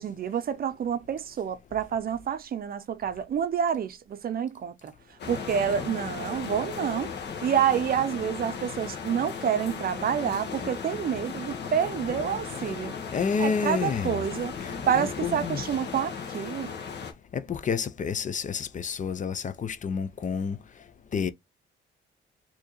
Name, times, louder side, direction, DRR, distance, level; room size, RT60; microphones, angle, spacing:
voice 1, 0.0-4.9 5.3-7.2 7.4-12.9 13.4-14.5 14.9-16.7, right 8 dB, 50° right, 0.6 m, -28 dB
sound 1, 5.2-17.1, left 6 dB, 60° left, 1.1 m, -36 dB
voice 2, 13.1-14.2 14.6-15.6 17.3-20.6 21.1-21.3, left 6 dB, 40° left, 0.5 m, -29 dB
4.5 x 2.8 x 3.0 m
cardioid pair, 90°, 20 cm